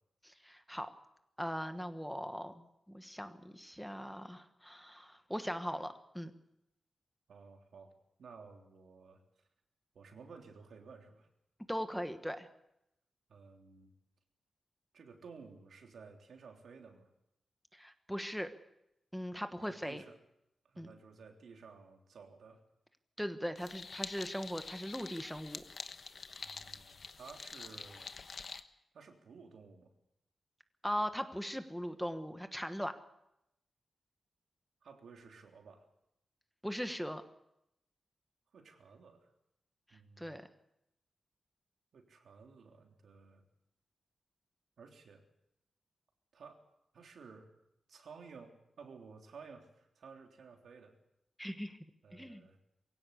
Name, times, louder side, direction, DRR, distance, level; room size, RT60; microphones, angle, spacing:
voice 1, 0.2-0.9 1.4-6.3 11.7-12.5 17.7-18.5 19.1-20.0 20.8-20.9 23.2-25.6 30.8-32.9 36.6-37.2 40.2-40.4 51.4-51.8 52.1-52.4, equal, ahead, 8 dB, 1.2 m, -39 dB
voice 2, 7.3-7.9 8.2-9.2 9.9-11.3 13.3-13.9 14.9-17.1 19.7-20.2 20.7-22.6 26.4-28.1 28.9-29.9 34.8-35.8 38.5-39.3 39.9-40.4 41.9-43.5 44.8-45.2 46.3-46.6 46.9-47.5 47.9-50.9 52.0-52.6, right 5 dB, 85° right, 3 dB, 3.4 m, -54 dB
sound 1, 23.6-28.6, left 4 dB, 50° left, 1.1 m, -46 dB
23.0 x 16.5 x 8.3 m, 0.83 s
wide cardioid pair, 155°, 0 cm